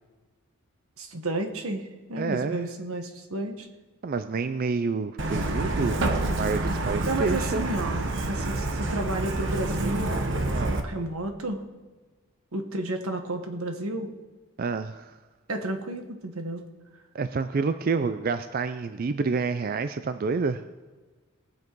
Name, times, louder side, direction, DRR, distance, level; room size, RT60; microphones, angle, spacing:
voice 1, 1.0-3.7 7.1-10.1 10.8-11.6 12.5-14.1 15.5-16.6, right 2 dB, 80° right, 5 dB, 1.4 m, -32 dB
voice 2, 2.2-2.6 4.0-7.6 10.5-10.9 14.6-15.2 17.1-20.6, right 4 dB, 45° right, 10 dB, 0.4 m, -28 dB
Truck, 5.2-10.8, right 2 dB, 60° right, 1.1 m, -27 dB
19.5 x 7.4 x 4.6 m, 1.3 s
head